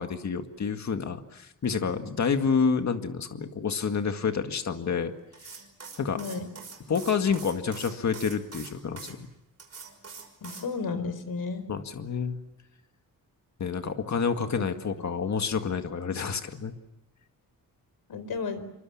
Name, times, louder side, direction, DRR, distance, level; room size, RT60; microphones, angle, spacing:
voice 1, 0.0-5.1 6.0-6.2 6.9-9.3 11.7-12.4 13.6-16.7, left 6 dB, 50° left, 6 dB, 2.0 m, -28 dB
sound 1, 5.3-9.1 9.6-10.7, right 5 dB, 45° right, 5.7 m, -44 dB
voice 2, 6.1-6.5 10.4-11.7 14.5-14.6 18.1-18.7, left 4 dB, 80° left, 11 dB, 4.5 m, -33 dB
28.0 x 25.0 x 7.3 m, 0.90 s
wide cardioid pair, 165°, 36 cm